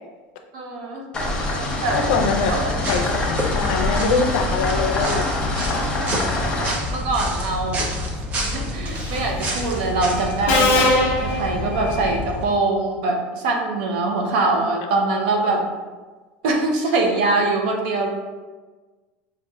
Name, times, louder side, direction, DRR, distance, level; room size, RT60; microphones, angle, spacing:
voice 1, 0.5-1.0 1.8-2.0 2.5-2.9 5.6-6.4 6.9-7.9 8.5-10.8 11.2-15.7 16.4-18.1, right 3 dB, 80° right, 1 dB, 0.8 m, -23 dB
sound 1, 1.1-6.7, left 2 dB, 15° left, 0.6 m, -25 dB
voice 2, 1.9-2.5 2.9-5.3 14.6-14.7 15.5-15.6, left 5 dB, 85° left, 4 dB, 0.5 m, -23 dB
sound 2, 1.9-12.4, left 1 dB, 25° right, 0.6 m, -28 dB
Subway metro underground, 9.0-9.3 10.5-12.2, left 2 dB, 50° left, 0.8 m, -21 dB
5.6 x 2.5 x 2.4 m, 1.3 s
cardioid pair, 165°, 5 cm